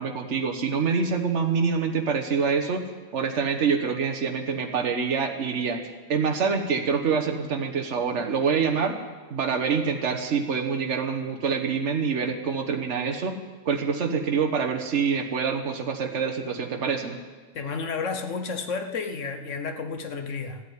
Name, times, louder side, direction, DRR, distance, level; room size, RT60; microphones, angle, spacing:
voice 1, 0.0-2.8 3.1-5.8 6.1-9.0 9.3-13.4 13.6-17.2, right 5 dB, 70° right, 4 dB, 1.5 m, -26 dB
voice 2, 17.5-20.6, left 5 dB, 80° left, 7 dB, 1.4 m, -31 dB
14.0 x 8.8 x 9.5 m, 1.4 s
omnidirectional pair, 1.3 m